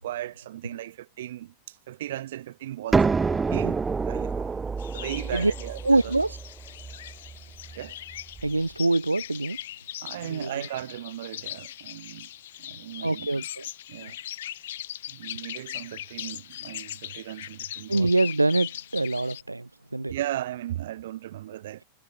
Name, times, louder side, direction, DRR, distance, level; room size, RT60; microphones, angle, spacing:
voice 1, 0.0-3.1 3.5-6.1 7.7-7.9 10.0-12.3 12.6-13.3 13.9-14.2 15.1-18.1 20.1-21.8, right 13 dB, 55° right, 5.1 m, -37 dB
sound 1, 2.9-8.5, right 4 dB, 15° right, 0.8 m, -28 dB
sound 2, 4.8-19.4, left 12 dB, 60° left, 5.0 m, -40 dB
voice 2, 5.8-6.4 8.4-9.6 10.3-10.5 13.0-13.6 17.9-19.7 19.9-20.1, right 2 dB, 85° right, 0.9 m, -24 dB
figure-of-eight pair, 90°, 0 cm